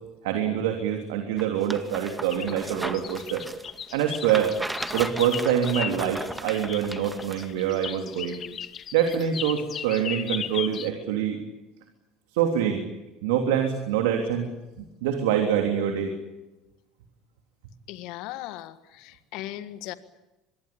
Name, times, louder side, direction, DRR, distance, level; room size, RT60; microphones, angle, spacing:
voice 1, 0.2-3.4 3.9-4.5 4.9-8.3 8.9-11.4 12.3-12.8 13.2-14.5 14.8-16.1, right 9 dB, 75° right, 4 dB, 3.3 m, -25 dB
sound 1, 1.4-7.5 7.8-7.9, right 1 dB, 10° right, 2.0 m, -36 dB
sound 2, 2.3-10.9, left 8 dB, 45° left, 1.6 m, -36 dB
voice 2, 17.9-19.9, left 15 dB, 65° left, 12 dB, 1.6 m, -38 dB
25.5 x 22.0 x 8.7 m, 0.99 s
hypercardioid pair, 75°, 0 cm